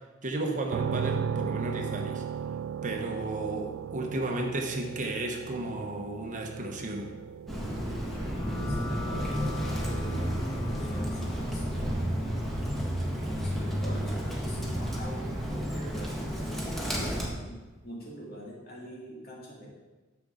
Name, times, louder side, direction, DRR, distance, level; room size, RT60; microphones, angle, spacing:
voice 1, 0.2-2.2 2.8-7.1, right 2 dB, 40° right, 2 dB, 1.0 m, -33 dB
sound 1, 0.7-14.5, right 7 dB, 70° right, 0.3 m, -38 dB
Bird, 7.5-17.3, equal, ahead, 1.5 m, -31 dB
sound 2, 8.1-15.4, left 4 dB, 30° left, 1.9 m, -46 dB
voice 2, 8.5-12.1 13.3-19.7, equal, 50° left, -3 dB, 2.5 m, -44 dB
10.5 x 7.0 x 3.8 m, 1.2 s
head